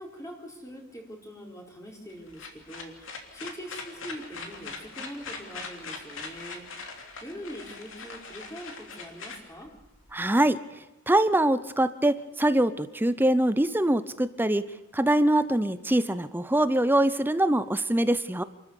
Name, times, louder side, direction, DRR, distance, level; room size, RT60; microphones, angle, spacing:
voice 1, 0.0-6.9 7.2-9.7, equal, 15° left, 1 dB, 4.2 m, -43 dB
sound 1, 2.1-10.1, left 4 dB, 60° left, 3.1 m, -41 dB
voice 2, 10.1-10.6 11.1-18.4, right 1 dB, 10° right, 13 dB, 0.6 m, -24 dB
28.5 x 13.5 x 7.1 m, 0.98 s
head